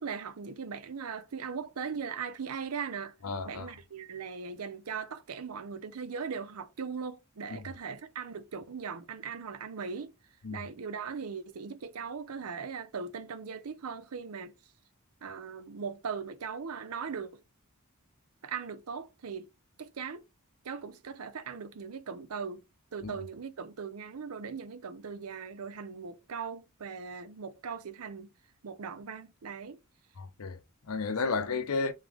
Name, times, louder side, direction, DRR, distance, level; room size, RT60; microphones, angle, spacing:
voice 1, 0.0-3.1 3.4-10.1 10.5-14.5 15.2-17.4 18.4-19.5 19.8-20.3 20.6-22.6 22.9-28.3 28.6-29.8, right 6 dB, 90° right, 0.6 m, -39 dB
voice 2, 3.2-3.7 7.5-7.7 10.4-10.6 23.0-23.1 30.2-31.9, left 4 dB, 85° left, 0.7 m, -33 dB
3.6 x 3.2 x 3.5 m
head